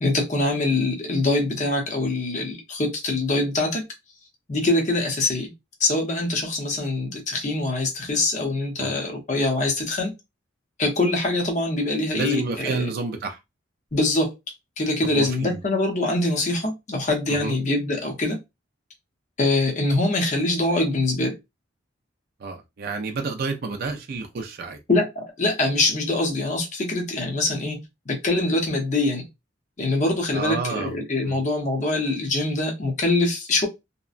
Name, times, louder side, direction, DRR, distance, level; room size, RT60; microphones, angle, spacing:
voice 1, 0.0-3.8 4.5-5.5 5.8-10.1 10.8-12.9 13.9-14.3 14.8-18.4 19.4-21.4 24.9-27.8 28.1-29.2 29.8-33.7, left 2 dB, 40° left, 0.8 m, -24 dB
voice 2, 12.1-13.4 15.1-15.6 17.3-17.6 22.4-24.8 30.3-31.0 31.3-31.4, right 4 dB, 50° right, 0.4 m, -29 dB
2.8 x 2.2 x 2.4 m
head